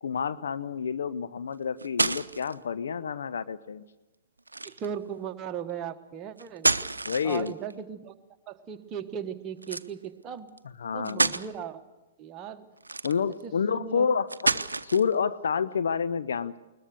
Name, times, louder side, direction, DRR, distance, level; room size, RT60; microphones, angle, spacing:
voice 1, 0.0-3.8 7.1-7.5 10.8-11.3 13.0-14.6 14.9-16.6, left 6 dB, 60° left, 15 dB, 0.7 m, -29 dB
sound 1, 1.5-2.5 4.5-4.9 6.4-7.7 9.6-9.9 10.6-10.7 11.0-11.5 12.8-13.4 14.3-15.1, right 3 dB, 80° right, 0.7 m, -28 dB
voice 2, 4.6-6.7 7.2-8.1 8.5-10.5 10.9-11.8 12.2-12.6 13.4-14.1, right 8 dB, 25° right, 7 dB, 1.3 m, -37 dB
21.5 x 20.5 x 6.8 m, 1.1 s
figure-of-eight pair, 115°, 0 cm